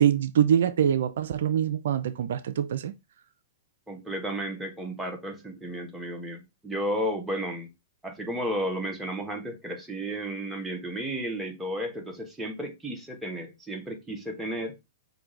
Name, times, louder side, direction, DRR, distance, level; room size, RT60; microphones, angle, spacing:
voice 1, 0.0-2.9, right 9 dB, 70° right, 0.3 m, -24 dB
voice 2, 3.9-7.7 8.0-14.8, equal, 5° right, 1.1 m, -33 dB
5.8 x 2.6 x 3.2 m
hypercardioid pair, 120°, 0 cm